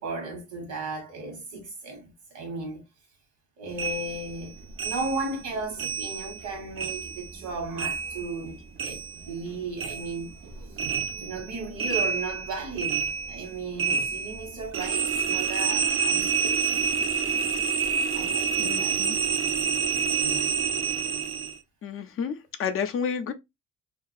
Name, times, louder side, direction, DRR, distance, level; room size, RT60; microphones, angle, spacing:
voice 1, 0.0-2.8 3.6-10.4 11.2-13.0 13.3-16.7 18.1-19.0 20.0-20.6, right 3 dB, 80° right, 1.2 m, -35 dB
sound 1, 3.8-6.5 6.8-9.5 9.8-21.6, right 6 dB, 45° right, 0.5 m, -28 dB
voice 2, 18.6-19.1 21.8-23.3, left 6 dB, 45° left, 0.4 m, -31 dB
2.4 x 2.3 x 2.4 m
cardioid pair, 90°, 30 cm